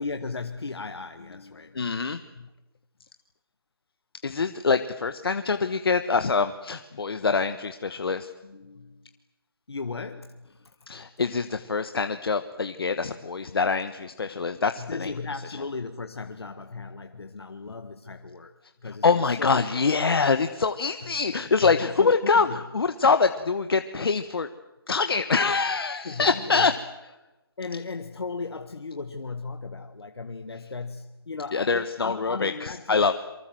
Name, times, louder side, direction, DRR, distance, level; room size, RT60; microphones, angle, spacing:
voice 1, 0.0-2.1 2.4-2.5 8.4-9.1 9.7-11.1 14.8-18.5 18.8-19.6 21.0-21.1 21.6-22.6 26.0-26.7 27.6-33.1, left 4 dB, 80° left, 6 dB, 1.7 m, -36 dB
voice 2, 1.7-2.2 4.2-8.3 10.9-15.1 19.0-24.5 24.9-26.7 31.5-33.1, left 4 dB, 65° left, 9 dB, 1.3 m, -24 dB
26.5 x 24.0 x 7.7 m, 1.0 s
hypercardioid pair, 165°, 13 cm